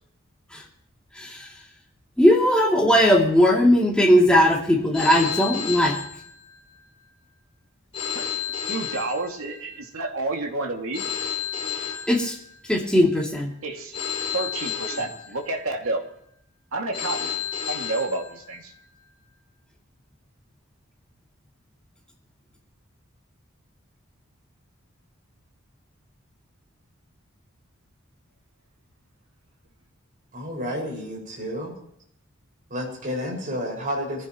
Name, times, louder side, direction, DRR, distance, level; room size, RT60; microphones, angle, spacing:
voice 1, 1.1-1.5 2.2-6.0 12.1-12.4 12.7-13.5, equal, 5° left, -3 dB, 2.8 m, -18 dB
Telephone, 4.9-6.8 7.9-9.8 10.9-12.8 13.9-15.8 16.9-18.8, left 8 dB, 25° left, 5.7 m, -32 dB
voice 2, 8.6-11.0 13.6-13.9 14.3-16.0 16.7-17.4 17.7-18.7, right 2 dB, 85° right, 2 dB, 2.4 m, -30 dB
voice 3, 30.3-31.7 32.7-34.3, equal, 40° right, -1 dB, 5.9 m, -30 dB
23.0 x 15.0 x 3.1 m, 0.72 s
head